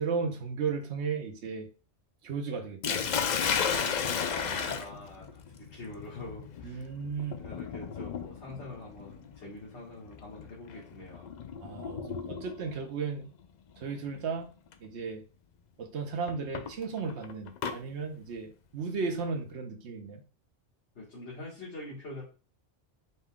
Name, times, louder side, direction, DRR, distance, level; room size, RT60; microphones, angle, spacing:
voice 1, 0.0-1.7 2.2-3.0 6.6-7.4 11.6-13.3 13.8-14.5 14.8-15.2 15.8-20.2, right 5 dB, 75° right, 3 dB, 1.1 m, -35 dB
Sink (filling or washing), 2.8-12.8 13.9-14.2 14.7-14.8 16.3-17.8, left 7 dB, 60° left, 0.5 m, -34 dB
voice 2, 3.6-6.9 7.3-11.3 21.0-22.2, left 2 dB, 75° left, -6 dB, 1.9 m, -44 dB
5.3 x 2.3 x 3.6 m, 0.35 s
omnidirectional pair, 1.2 m